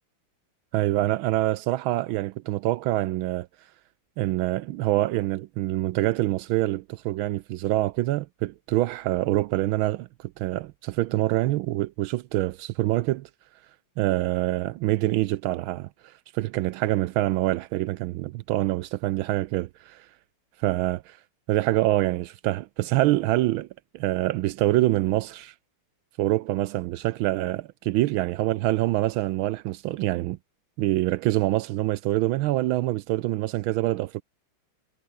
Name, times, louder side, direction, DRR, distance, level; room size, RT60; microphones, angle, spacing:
voice 1, 0.7-3.5 4.2-13.3 14.0-15.9 16.3-20.0 20.6-21.0 21.5-23.7 23.9-25.5 26.2-30.4 30.8-34.2, right 16 dB, 75° right, 1.3 m, -25 dB
omnidirectional pair, 2.4 m